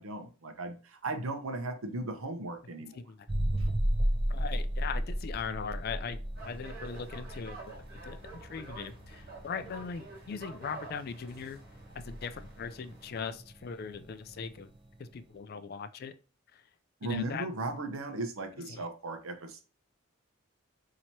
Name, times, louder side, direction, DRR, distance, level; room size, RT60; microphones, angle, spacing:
voice 1, 0.0-3.0 3.6-3.7 17.0-19.6, right 2 dB, 90° right, 6 dB, 0.8 m, -37 dB
voice 2, 2.9-3.3 4.3-6.2 6.5-7.8 8.0-11.6 12.0-14.7 15.0-16.1 16.5-16.6 17.0-17.5 18.7-18.9, left 6 dB, 45° left, 11 dB, 0.3 m, -40 dB
sound 1, 3.3-14.9, equal, 25° right, 0.5 m, -34 dB
sound 2, 6.4-13.3, right 3 dB, 45° right, 1.3 m, -49 dB
2.9 x 2.8 x 4.4 m, 0.35 s
head